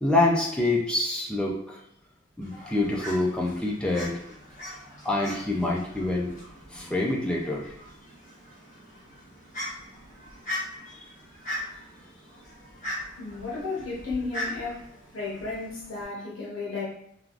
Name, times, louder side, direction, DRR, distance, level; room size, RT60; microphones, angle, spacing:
voice 1, 0.0-1.8 2.4-4.2 5.0-6.3 6.7-7.7 10.9-11.0, left 2 dB, 5° left, -3 dB, 0.4 m, -26 dB
Fowl, 2.4-16.0, left 1 dB, 35° left, 1.3 m, -40 dB
voice 2, 13.2-14.8 15.1-16.8, left 3 dB, 70° left, -7 dB, 0.9 m, -33 dB
3.3 x 2.3 x 2.4 m, 0.77 s
head